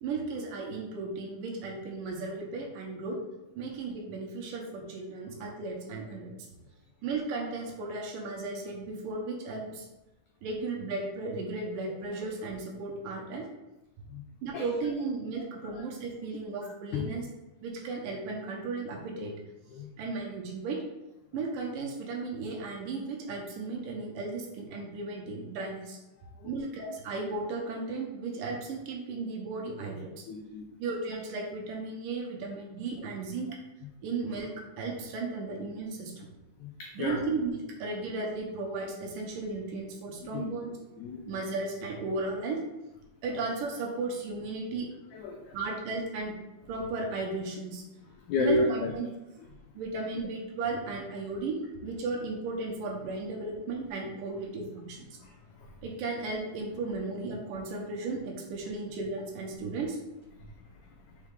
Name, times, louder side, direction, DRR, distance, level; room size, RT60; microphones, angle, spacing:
voice 1, 0.0-3.2 3.6-6.3 7.0-9.9 10.4-13.5 14.4-17.2 17.6-19.3 20.0-20.8 21.3-26.0 26.4-30.2 30.8-33.5 34.0-34.5 34.8-36.3 37.0-37.5 37.8-40.7 41.3-42.6 43.2-44.9 45.5-46.3 46.7-47.8 48.4-49.1 49.8-51.6 51.8-55.1 55.8-60.0, right 3 dB, 70° right, 0 dB, 2.5 m, -35 dB
voice 2, 16.6-17.1 19.7-19.9 26.4-26.5 30.3-30.6 36.6-37.2 40.2-40.5 41.0-41.3 45.1-45.6 48.3-49.0 55.2-55.3 55.6-55.7, left 3 dB, 90° left, 2 dB, 1.6 m, -32 dB
6.0 x 4.5 x 3.8 m, 1.0 s
omnidirectional pair, 4.1 m